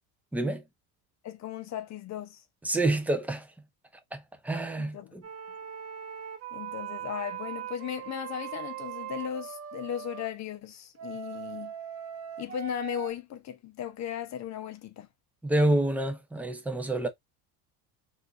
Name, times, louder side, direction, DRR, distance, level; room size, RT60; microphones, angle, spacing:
voice 1, 0.3-0.6 2.6-3.5 4.1-5.2 15.4-17.1, right 1 dB, 5° right, 0.5 m, -28 dB
voice 2, 1.2-2.4 4.8-5.1 6.5-11.7 12.4-15.1, left 10 dB, 40° left, 0.7 m, -37 dB
sound 1, 5.2-10.3 11.0-13.1, right 10 dB, 35° right, 1.0 m, -40 dB
3.6 x 2.6 x 2.3 m
supercardioid pair, 115°, 42 cm